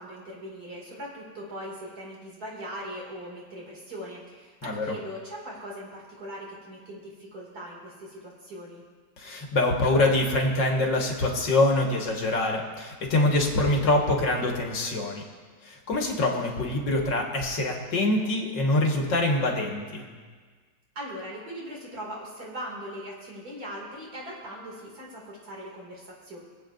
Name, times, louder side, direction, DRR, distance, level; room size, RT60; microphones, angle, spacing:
voice 1, 0.0-8.8 20.9-26.4, equal, 55° right, -4 dB, 3.0 m, -40 dB
voice 2, 4.6-4.9 9.2-15.2 15.6-20.1, left 2 dB, 80° left, 0 dB, 2.2 m, -25 dB
23.5 x 8.2 x 2.6 m, 1.5 s
omnidirectional pair, 1.9 m